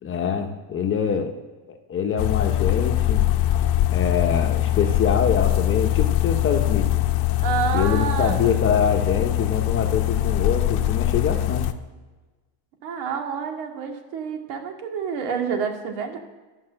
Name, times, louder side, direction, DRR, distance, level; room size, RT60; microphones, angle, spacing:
voice 1, 0.0-1.3 1.7-3.3 3.9-6.9 7.7-11.7, left 7 dB, 25° left, 5 dB, 0.9 m, -24 dB
sound 1, 2.2-11.7, left 14 dB, 55° left, 0.8 m, -22 dB
voice 2, 7.4-8.5 12.8-16.2, right 7 dB, 75° right, 3 dB, 2.3 m, -28 dB
12.0 x 5.6 x 7.5 m, 1.2 s
cardioid pair, 165°, 46 cm